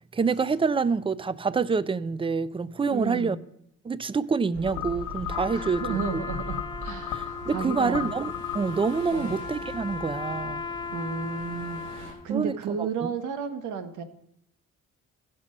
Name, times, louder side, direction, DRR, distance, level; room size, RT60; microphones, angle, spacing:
voice 1, 0.1-3.4 3.8-6.2 7.1-10.6 12.3-13.1, right 5 dB, 20° right, 0.4 m, -27 dB
voice 2, 2.9-3.4 5.5-8.1 9.1-9.4 10.9-14.0, right 6 dB, 85° right, 1.1 m, -33 dB
sound 1, 4.5-12.1, equal, 55° right, 3.4 m, -42 dB
sound 2, 4.6-9.4, left 14 dB, 90° left, 1.2 m, -37 dB
Trumpet, 5.3-12.3, left 4 dB, 15° left, 0.8 m, -37 dB
15.5 x 6.0 x 5.3 m
cardioid pair, 90°, 30 cm